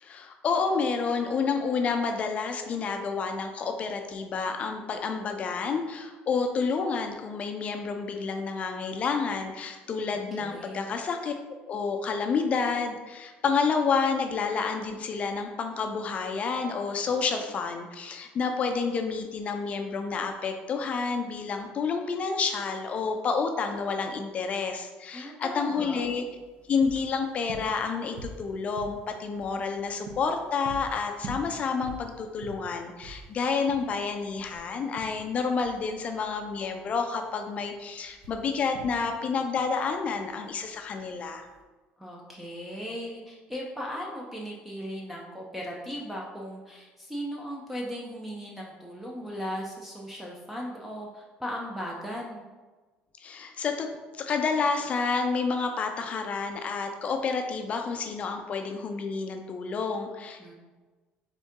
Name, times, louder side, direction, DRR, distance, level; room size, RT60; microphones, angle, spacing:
voice 1, 0.0-11.3 11.7-26.2 26.7-41.5 53.2-60.5, left 5 dB, 40° left, 5 dB, 0.4 m, -29 dB
voice 2, 10.1-11.0 25.1-26.0 42.0-52.5 60.4-60.5, equal, 5° right, -3 dB, 0.6 m, -37 dB
sound 1, 26.0-41.6, right 2 dB, 80° right, 0.8 m, -46 dB
4.0 x 3.7 x 3.6 m, 1.3 s
cardioid pair, 140°, 4 cm